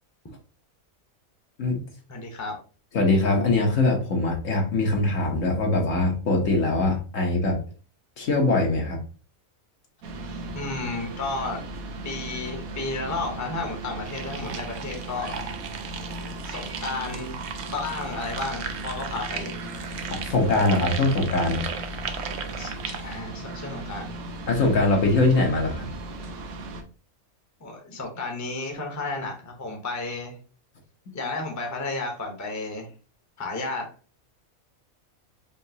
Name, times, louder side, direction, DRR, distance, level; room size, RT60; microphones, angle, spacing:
voice 1, 2.1-2.6 10.5-11.6 12.0-15.4 16.4-17.3 17.6-19.6 22.6-24.1 27.6-30.4 31.1-32.9 33.4-33.9, left 3 dB, 15° left, 2 dB, 0.8 m, -32 dB
voice 2, 2.9-7.6 8.2-9.0 20.1-21.6 24.5-25.9, left 2 dB, 65° left, 0 dB, 1.4 m, -22 dB
sound 1, 10.0-26.8, right 2 dB, 85° right, 1.2 m, -37 dB
sound 2, 14.1-23.2, right 7 dB, 60° right, 0.8 m, -37 dB
5.1 x 2.8 x 2.8 m, 0.37 s
omnidirectional pair, 1.5 m